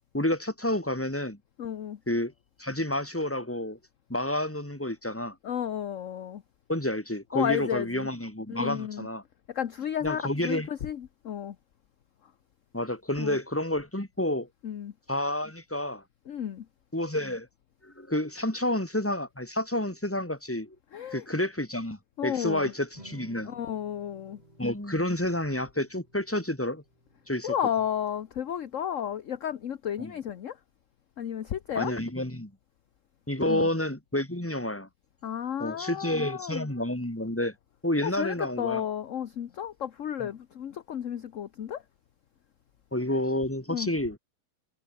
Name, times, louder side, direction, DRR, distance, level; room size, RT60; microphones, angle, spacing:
voice 1, 0.1-1.4 2.1-2.3 2.6-3.8 4.1-5.4 6.7-9.2 10.0-10.7 12.7-14.5 15.1-16.0 16.9-17.5 17.8-20.7 21.1-23.5 24.6-26.8 27.3-27.5 30.0-30.1 31.7-32.5 33.3-34.9 35.6-37.5 37.8-38.8 42.9-44.2, left 1 dB, 5° left, 3.1 m, -29 dB
voice 2, 1.6-2.0 5.4-6.4 7.3-8.1 8.5-9.1 9.5-11.6 12.2-12.3 13.2-13.4 14.6-14.9 16.3-16.7 20.9-21.2 22.2-22.7 23.4-24.4 27.4-30.6 31.2-31.9 33.5-33.7 35.2-36.7 38.0-41.8 43.7-43.9, left 9 dB, 50° left, 1.0 m, -32 dB
sound 1, 22.9-29.2, right 1 dB, 20° right, 7.7 m, -57 dB
omnidirectional pair, 2.3 m